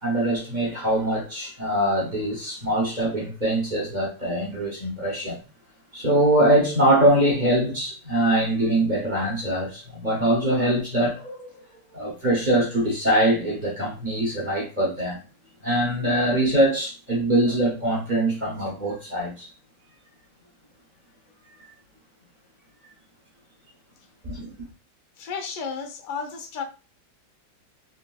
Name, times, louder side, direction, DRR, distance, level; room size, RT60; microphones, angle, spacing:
voice 1, 0.0-5.4 5.9-11.5 11.9-15.2 15.6-19.5 24.2-24.5, right 1 dB, 40° right, 0.7 m, -23 dB
voice 2, 25.2-26.6, left 6 dB, 90° left, 1.5 m, -32 dB
3.7 x 2.7 x 2.2 m
omnidirectional pair, 2.0 m